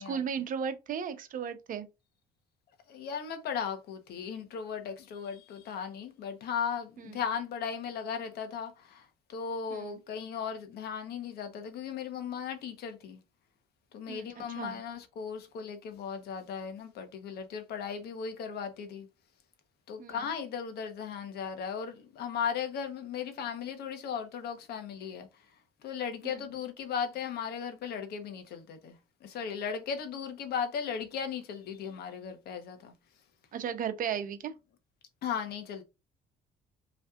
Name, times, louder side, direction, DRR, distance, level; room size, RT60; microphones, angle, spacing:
voice 1, 0.0-1.9 7.0-7.2 9.7-10.0 14.1-14.8 20.0-20.3 26.2-26.4 33.5-34.5, right 7 dB, 55° right, 0.8 m, -36 dB
voice 2, 2.9-13.2 13.9-19.1 19.9-25.3 25.8-29.0 29.2-32.9 35.2-35.8, left 7 dB, 70° left, 1.2 m, -37 dB
5.5 x 3.3 x 2.4 m
cardioid pair, 110°, 17 cm